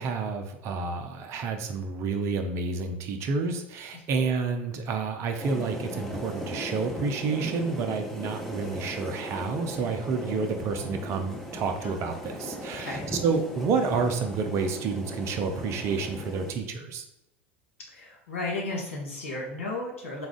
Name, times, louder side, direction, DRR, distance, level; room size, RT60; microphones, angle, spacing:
voice 1, 0.0-17.0, right 4 dB, 45° right, 6 dB, 0.5 m, -29 dB
sound 1, 5.4-16.5, equal, ahead, 0.7 m, -38 dB
voice 2, 17.9-20.3, left 2 dB, 80° left, -2 dB, 1.2 m, -34 dB
4.0 x 2.4 x 3.6 m, 0.84 s
figure-of-eight pair, 80°, 7 cm